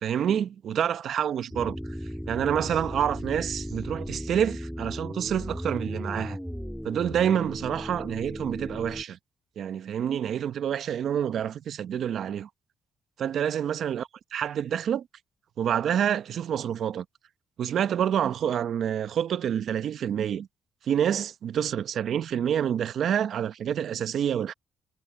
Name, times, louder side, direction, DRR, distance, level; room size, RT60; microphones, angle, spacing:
voice 1, 0.0-1.8 2.3-6.4 6.8-9.2 9.6-12.5 13.2-15.0 15.6-17.0 17.6-20.5 20.9-24.5, right 9 dB, 65° right, 0.8 m, -27 dB
sound 1, 1.5-9.0, equal, ahead, 3.0 m, -36 dB
cardioid pair, 90°, 0 cm